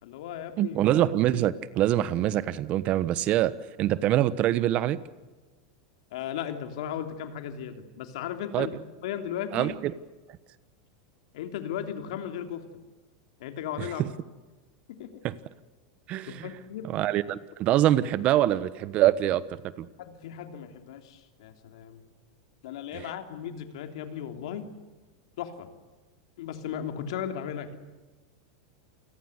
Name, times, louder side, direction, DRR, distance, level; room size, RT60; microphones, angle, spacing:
voice 1, 0.0-0.8 6.1-8.7 9.0-9.7 11.3-12.6 13.4-14.0 14.9-15.2 16.3-16.8 20.0-22.0 22.6-24.7 25.4-25.7 26.4-27.8, left 9 dB, 75° left, 6 dB, 3.3 m, -36 dB
voice 2, 0.6-3.5 3.8-5.0 8.5-8.7 9.5-9.9 13.8-14.1 15.2-15.3 16.1-16.5 16.8-19.4 19.8-19.9 22.9-23.1, right 13 dB, 40° right, 16 dB, 1.2 m, -24 dB
28.5 x 20.5 x 8.2 m, 1.2 s
supercardioid pair, 130°, 3 cm